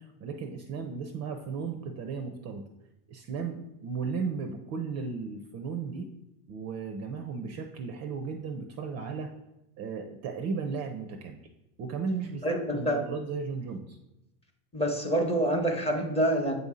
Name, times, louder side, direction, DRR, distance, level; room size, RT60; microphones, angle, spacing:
voice 1, 0.0-2.6 3.1-6.1 6.5-9.3 9.8-11.4 11.8-14.0, right 5 dB, 35° right, 5 dB, 0.4 m, -35 dB
voice 2, 12.4-13.1 14.7-16.5, right 1 dB, 10° left, 3 dB, 0.7 m, -27 dB
8.0 x 2.7 x 4.8 m, 0.93 s
supercardioid pair, 125°, 48 cm